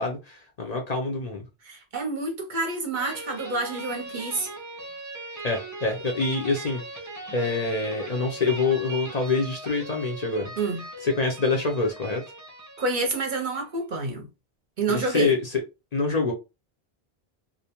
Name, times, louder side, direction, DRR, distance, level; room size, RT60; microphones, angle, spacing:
voice 1, 0.0-1.4 5.4-6.8 7.3-10.5 11.0-12.2 14.9-15.6 15.9-16.3, left 3 dB, 50° left, 0.6 m, -26 dB
voice 2, 1.6-4.5 10.6-10.8 12.8-14.3 14.8-15.3, right 3 dB, 55° right, 0.7 m, -28 dB
sound 1, 3.0-13.7, right 2 dB, 30° right, 0.3 m, -40 dB
2.5 x 2.1 x 2.8 m
omnidirectional pair, 1.0 m